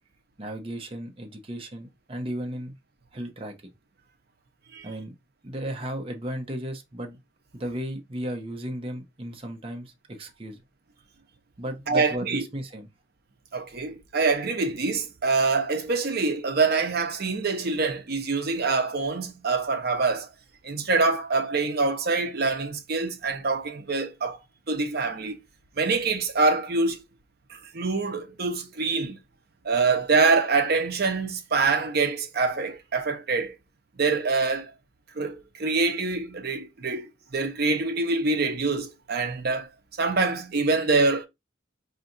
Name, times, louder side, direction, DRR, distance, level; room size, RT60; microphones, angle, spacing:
voice 1, 0.4-2.7 3.1-3.5 4.8-5.1 5.4-7.2 7.5-10.6 11.6-12.9, equal, 30° right, 0.7 m, -35 dB
voice 2, 11.9-12.4 13.5-20.3 20.6-24.4 24.7-25.4 25.8-27.0 27.5-29.2 29.6-33.5 34.0-34.7 35.2-39.7 40.0-41.3, right 4 dB, 55° right, 0.8 m, -25 dB
4.7 x 2.9 x 2.6 m
head